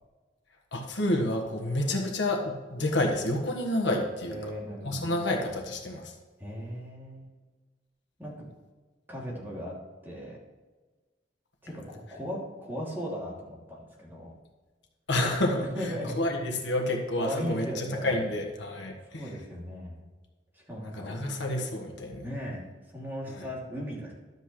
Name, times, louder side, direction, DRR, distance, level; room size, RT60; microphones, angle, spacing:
voice 1, 0.7-4.5 4.8-6.1 15.1-19.3 20.9-22.3 23.3-23.5, left 1 dB, 75° left, 1 dB, 1.5 m, -29 dB
voice 2, 4.2-5.1 6.4-7.3 8.2-8.3 9.1-9.7 10.0-10.4 11.6-14.3 15.7-16.1 17.2-18.2 19.1-20.0 20.5-21.2 22.2-22.6 22.9-24.1, equal, 10° right, -5 dB, 2.7 m, -37 dB
12.0 x 8.1 x 3.2 m, 1.3 s
head